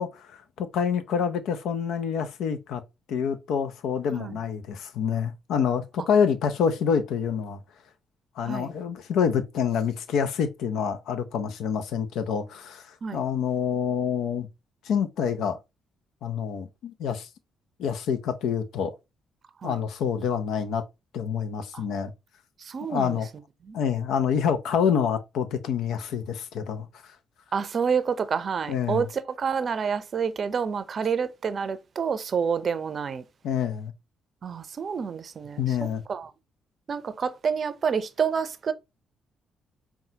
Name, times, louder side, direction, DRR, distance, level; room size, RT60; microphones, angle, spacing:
voice 1, 0.0-2.8 3.1-7.6 8.4-12.9 13.1-14.5 14.8-15.6 16.2-17.3 17.8-18.9 19.6-20.8 21.1-22.1 22.9-23.3 23.7-26.9 28.7-29.1 33.4-33.9 35.6-36.0, left 7 dB, 70° left, 0.5 m, -27 dB
voice 2, 22.6-23.2 23.6-23.8 27.5-33.2 34.4-36.3 36.9-38.7, right 6 dB, 50° right, 0.5 m, -28 dB
5.4 x 2.3 x 2.7 m
hypercardioid pair, 50°, 0 cm